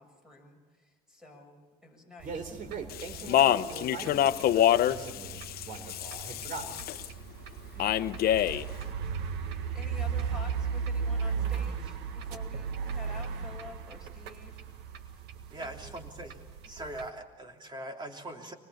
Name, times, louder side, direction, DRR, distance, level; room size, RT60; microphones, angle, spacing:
voice 1, 0.0-2.4 7.7-8.1 9.7-15.2 15.6-15.9, left 3 dB, 5° right, 3 dB, 6.8 m, -50 dB
voice 2, 2.2-7.2, right 4 dB, 55° right, 6 dB, 4.4 m, -41 dB
sound 1, 2.2-17.1, right 6 dB, 85° right, 1.7 m, -36 dB
Speech, 2.9-7.1 7.8-8.7, left 11 dB, 65° left, 0.8 m, -26 dB
voice 3, 15.5-16.4 16.7-18.5, right 1 dB, 25° right, 3 dB, 3.2 m, -41 dB
25.0 x 20.5 x 7.2 m, 1.2 s
cardioid pair, 110°, 17 cm